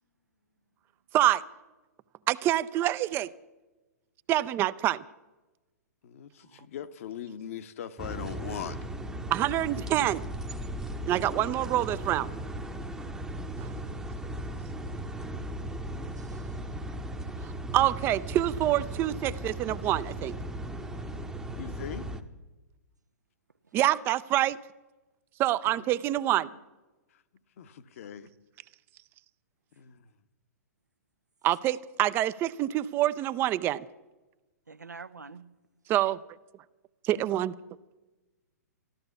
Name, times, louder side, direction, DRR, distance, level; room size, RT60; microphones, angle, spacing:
voice 1, 2.3-3.3 4.3-5.0 9.3-10.3 11.1-12.3 13.6-13.7 17.7-20.3 23.7-24.6 25.4-26.5 31.4-33.9 35.9-36.2 37.0-37.5, right 13 dB, 25° right, 0.4 m, -26 dB
voice 2, 6.0-8.8 21.6-22.1 25.8-26.6 27.6-28.3 29.8-30.1, left 9 dB, 55° left, 0.9 m, -41 dB
sound 1, 8.0-22.2, right 1 dB, 5° right, 0.8 m, -37 dB
voice 3, 16.2-16.6 23.7-23.8 34.7-35.5, right 4 dB, 85° right, 0.7 m, -47 dB
13.5 x 13.0 x 7.0 m
figure-of-eight pair, 115°, 9 cm